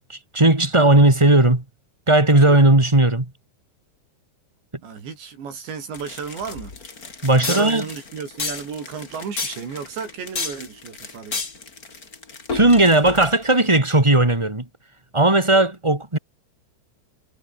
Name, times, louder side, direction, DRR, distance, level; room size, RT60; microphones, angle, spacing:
voice 1, 0.0-1.6 2.1-3.3 7.2-7.8 12.5-14.6 15.1-16.2, right 2 dB, 15° right, 0.9 m, -16 dB
voice 2, 4.8-6.7 7.4-11.4, right 6 dB, 75° right, 7.5 m, -33 dB
sound 1, 5.9-13.6, left 4 dB, 25° left, 2.7 m, -32 dB
omnidirectional pair, 5.1 m